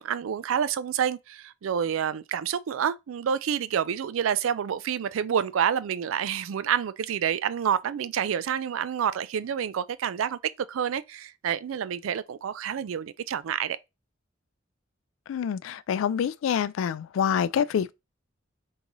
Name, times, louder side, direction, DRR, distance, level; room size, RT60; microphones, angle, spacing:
voice 1, 0.0-13.8, right 8 dB, 85° right, 0.4 m, -28 dB
voice 2, 15.3-17.9, left 8 dB, 80° left, 0.3 m, -26 dB
3.9 x 3.8 x 2.9 m
head